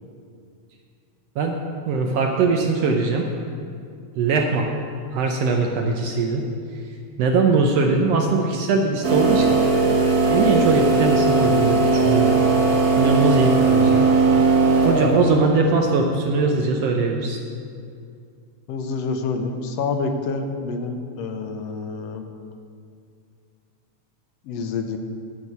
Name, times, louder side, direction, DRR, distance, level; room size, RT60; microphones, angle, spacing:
voice 1, 1.9-3.3 4.1-4.7 5.1-6.4 7.2-9.6 10.3-12.4 13.0-14.0 14.8-17.4, right 4 dB, 70° right, 2 dB, 1.6 m, -21 dB
sound 1, 9.0-15.4, right 3 dB, 45° right, 1.5 m, -18 dB
voice 2, 18.7-22.2 24.4-25.0, left 4 dB, 70° left, 6 dB, 1.7 m, -27 dB
10.5 x 5.3 x 8.4 m, 2.4 s
omnidirectional pair, 3.3 m